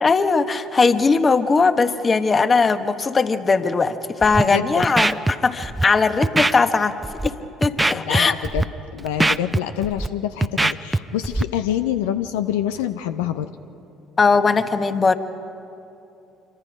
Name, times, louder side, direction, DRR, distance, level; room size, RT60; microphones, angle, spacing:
voice 1, 0.0-6.9 7.2-7.3 7.6-8.3 14.2-15.1, left 4 dB, 35° left, 9 dB, 1.3 m, -19 dB
Scratching (performance technique), 4.2-4.4 4.8-5.3 5.6-5.8 6.2-6.5 7.0-7.3 7.6-8.2 8.4-8.6 9.0-10.1 10.4-11.0 11.2-11.4, right 2 dB, 15° right, 0.7 m, -20 dB
voice 2, 4.5-4.9 7.9-8.7 8.9-13.5, left 11 dB, 80° left, 9 dB, 0.6 m, -26 dB
26.5 x 24.0 x 5.1 m, 2.7 s
hypercardioid pair, 60°, 0 cm